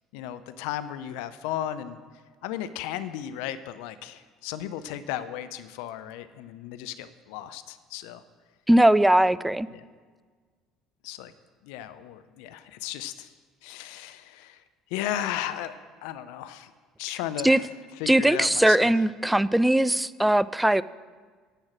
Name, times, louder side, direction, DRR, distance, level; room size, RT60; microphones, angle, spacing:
voice 1, 0.1-2.0 2.4-8.2 9.7-9.8 11.0-11.3 11.6-13.3 13.6-14.6 14.9-16.7 17.0-17.7 18.0-18.9, left 11 dB, 65° left, 13 dB, 0.4 m, -35 dB
voice 2, 8.7-9.7 17.4-17.6 18.1-20.8, right 1 dB, 5° right, 18 dB, 0.3 m, -20 dB
9.8 x 6.3 x 7.4 m, 1.5 s
figure-of-eight pair, 60°, 0 cm